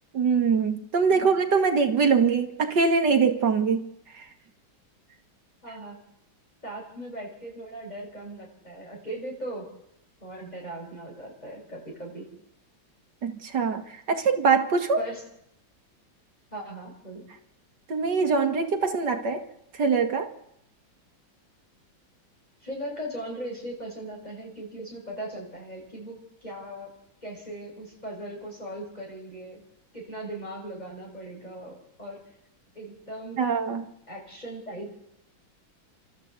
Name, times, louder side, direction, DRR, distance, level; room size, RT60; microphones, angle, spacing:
voice 1, 0.1-3.9 4.1-4.2 13.2-15.1 17.9-19.5 19.8-20.3 33.4-33.9, right 5 dB, 60° right, 5 dB, 2.4 m, -23 dB
voice 2, 5.6-6.0 6.6-9.7 10.2-12.3 15.0-15.2 16.5-17.2 22.6-26.9 27.2-29.6 29.9-32.2 32.8-33.4 34.1-35.0, right 1 dB, 20° left, -1 dB, 6.7 m, -38 dB
29.5 x 13.5 x 8.3 m, 0.79 s
omnidirectional pair, 2.2 m